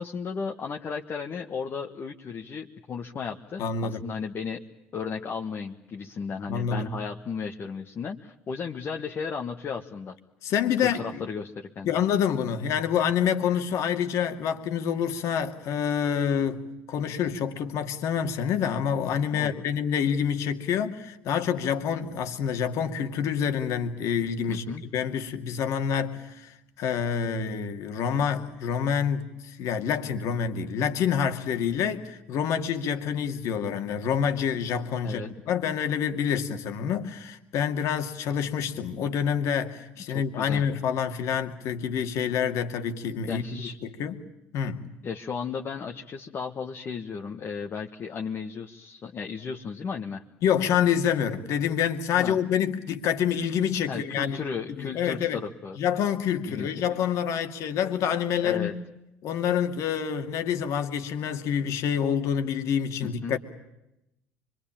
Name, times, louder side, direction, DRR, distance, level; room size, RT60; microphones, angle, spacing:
voice 1, 0.0-4.6 4.9-10.1 10.8-11.9 19.3-19.6 24.5-24.8 35.0-35.3 40.1-40.6 43.3-43.7 45.0-50.2 52.1-52.4 53.9-55.8 56.4-56.8 58.4-58.7 63.0-63.4, left 6 dB, 40° left, 1.6 m, -35 dB
voice 2, 3.6-4.0 6.5-6.9 10.4-11.2 11.9-24.6 24.9-35.2 35.5-43.4 43.8-44.2 44.5-44.9 50.4-54.4 54.8-55.4 55.8-58.7 59.2-63.4, left 8 dB, 60° left, 2.3 m, -27 dB
25.5 x 23.5 x 8.9 m
hypercardioid pair, 80°, 6 cm